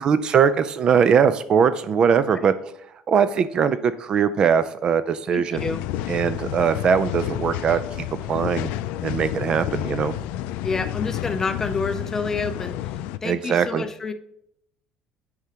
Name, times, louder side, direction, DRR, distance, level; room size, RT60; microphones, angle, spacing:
voice 1, 0.0-2.5 3.1-5.7 6.1-8.7 9.0-10.1 13.2-13.8, right 7 dB, 40° right, 14 dB, 0.4 m, -21 dB
voice 2, 5.3-5.8 10.6-12.8 13.2-14.1, left 4 dB, 20° left, 11 dB, 0.5 m, -28 dB
sound 1, 5.5-13.2, left 13 dB, 80° left, 0.4 m, -30 dB
8.1 x 4.9 x 2.9 m, 0.73 s
cardioid pair, 135°, 2 cm